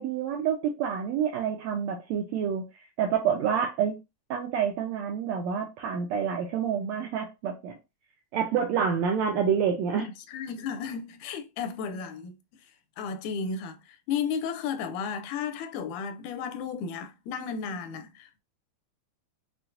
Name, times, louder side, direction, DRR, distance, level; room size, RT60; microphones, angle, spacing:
voice 1, 0.0-2.6 3.0-4.0 4.3-7.8 8.3-10.1, right 7 dB, 75° right, 1.8 m, -28 dB
voice 2, 10.0-12.4 13.0-18.4, left 6 dB, 85° left, 2.0 m, -34 dB
5.8 x 2.4 x 2.5 m
omnidirectional pair, 3.4 m